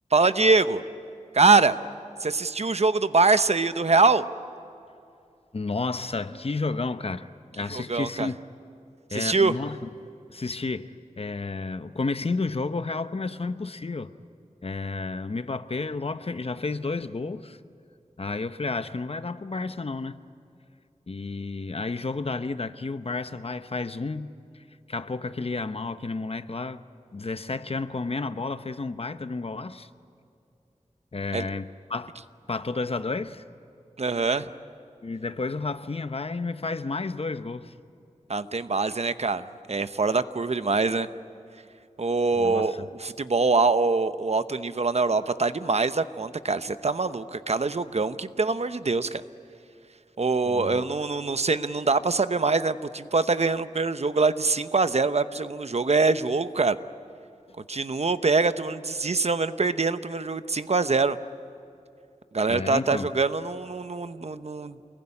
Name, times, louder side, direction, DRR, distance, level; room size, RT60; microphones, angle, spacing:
voice 1, 0.1-0.8 1.3-1.8 2.2-4.2 7.7-8.3 9.1-9.5 31.3-31.5 34.0-34.5 38.3-41.1 42.0-49.2 50.2-56.8 57.7-61.2 62.3-64.8, right 3 dB, 55° right, 0.9 m, -24 dB
voice 2, 5.5-8.4 9.1-9.9 10.3-14.1 14.6-17.6 18.2-20.2 21.1-24.3 24.9-26.8 27.1-29.9 31.1-32.1 32.5-33.4 35.0-37.7 42.3-42.9 50.5-50.8 62.5-63.1, left 3 dB, 50° left, 0.9 m, -31 dB
28.5 x 21.5 x 9.8 m
wide cardioid pair, 80°, 13 cm